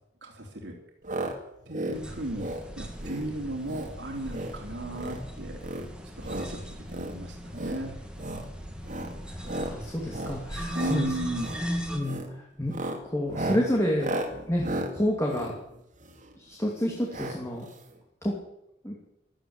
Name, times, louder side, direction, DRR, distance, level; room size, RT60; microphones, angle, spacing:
voice 1, 0.2-0.8 1.7-5.6 6.2-6.6 6.9-7.9 10.7-11.5, right 1 dB, 80° right, 1 dB, 3.4 m, -35 dB
sound 1, 1.0-1.3 1.6-2.0 2.3-2.6 3.0-3.3 3.6-3.9 4.2-4.6 4.9-5.2 5.6-6.5 6.9-7.1 7.5-7.8 8.2-8.5 8.8-9.1 9.4-9.7 10.1-10.4 10.7-11.0 11.4-11.6 12.0-12.3 12.6-16.3 17.1-17.4 17.7-17.8 17.9-18.0, right 1 dB, 45° right, 2.5 m, -34 dB
sound 2, 1.9-12.0, equal, 5° right, 2.3 m, -39 dB
voice 2, 9.3-11.1 11.9-14.2 14.5-15.6 16.4-17.7 18.2-18.4 18.8-19.0, equal, 15° left, -1 dB, 2.6 m, -29 dB
14.0 x 12.5 x 8.0 m, 0.84 s
head